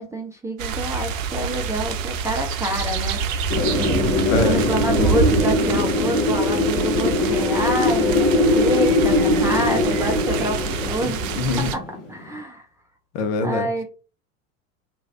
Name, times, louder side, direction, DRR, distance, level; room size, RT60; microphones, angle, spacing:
voice 1, 0.0-3.2 4.4-11.2 11.7-11.8 12.1-12.7 13.4-13.8, right 1 dB, 5° right, 0.6 m, -27 dB
sound 1, 0.6-11.8, right 5 dB, 60° right, 0.7 m, -26 dB
Wind, 3.5-12.2, left 2 dB, 35° left, 1.4 m, -21 dB
voice 2, 4.3-4.6 11.0-11.7 13.1-13.7, left 4 dB, 50° left, 0.9 m, -24 dB
3.2 x 2.6 x 3.6 m
figure-of-eight pair, 80°, 43 cm